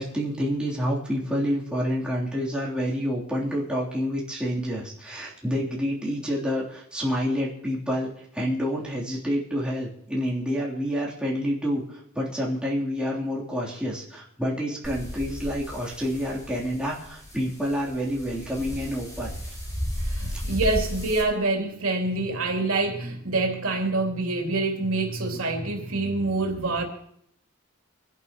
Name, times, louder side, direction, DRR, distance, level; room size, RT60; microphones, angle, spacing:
voice 1, 0.0-19.4 20.3-20.4, equal, 5° right, -6 dB, 3.4 m, -28 dB
sound 1, 14.8-21.2, equal, 15° left, 4.9 m, -34 dB
voice 2, 20.0-26.8, right 2 dB, 85° right, 1 dB, 3.1 m, -26 dB
25.5 x 11.0 x 3.0 m, 0.73 s
head